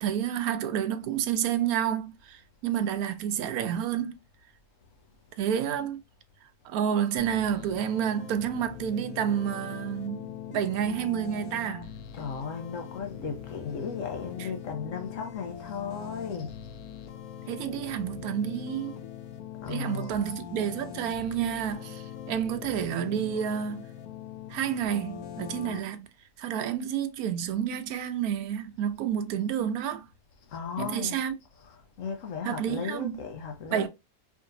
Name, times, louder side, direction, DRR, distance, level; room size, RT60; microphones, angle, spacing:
voice 1, 0.0-4.2 5.4-6.0 6.6-11.9 17.5-19.0 19.7-23.9 24.5-26.1 26.4-30.1 30.8-31.3 32.4-33.2 33.7-33.9, right 9 dB, 80° right, 1.1 m, -29 dB
sound 1, 7.2-25.8, left 10 dB, 85° left, 1.1 m, -42 dB
voice 2, 12.1-16.6 19.6-20.4 30.5-31.3 31.6-33.9, left 5 dB, 65° left, 1.1 m, -36 dB
4.8 x 2.9 x 2.6 m
omnidirectional pair, 1.6 m